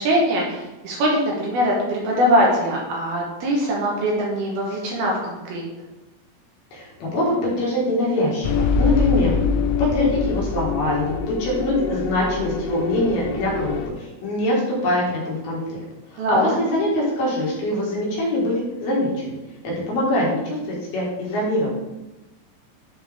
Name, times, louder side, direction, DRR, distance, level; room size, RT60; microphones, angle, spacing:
voice 1, 0.0-5.6 16.2-16.6, equal, 70° right, -2 dB, 2.8 m, -22 dB
voice 2, 6.7-9.3 9.8-11.1 11.4-15.8 16.1-19.4 19.6-21.7, left 1 dB, 65° left, -4 dB, 3.4 m, -23 dB
sound 1, 8.4-13.9, left 5 dB, 90° left, 3.0 m, -24 dB
10.5 x 4.5 x 3.5 m, 1.0 s
omnidirectional pair, 5.0 m